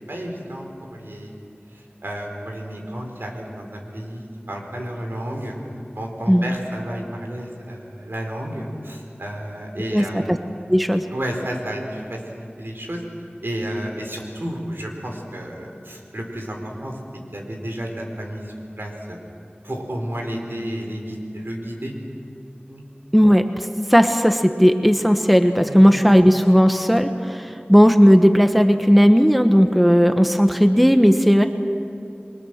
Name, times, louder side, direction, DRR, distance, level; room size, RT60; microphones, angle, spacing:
voice 1, 0.1-1.4 2.0-5.5 5.9-10.2 11.1-13.0 13.4-16.6 16.8-17.0 17.3-18.4 18.8-19.2 19.6-21.9 22.7-22.8 25.6-25.8, equal, 75° right, 1 dB, 4.3 m, -31 dB
voice 2, 9.9-10.4 10.7-11.0 23.1-31.5, equal, ahead, 7 dB, 1.2 m, -15 dB
28.5 x 22.5 x 6.6 m, 2.5 s
wide cardioid pair, 45°, 4 cm